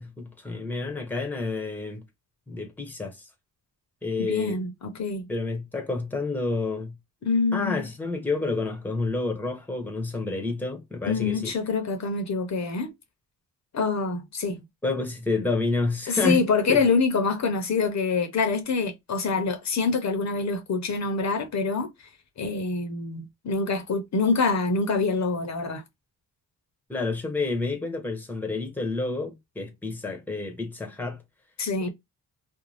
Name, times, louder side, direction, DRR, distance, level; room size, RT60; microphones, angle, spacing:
voice 1, 0.0-2.0 2.5-3.3 4.0-4.6 5.3-6.9 7.5-11.5 14.8-16.4 16.7-16.8 26.9-31.2, left 3 dB, 5° left, 0.8 m, -29 dB
voice 2, 4.2-5.3 7.2-7.8 11.1-12.9 13.7-14.6 16.1-22.1 22.4-25.8 31.6-31.9, left 4 dB, 55° left, 0.8 m, -26 dB
2.6 x 2.2 x 3.2 m
cardioid pair, 100°, 34 cm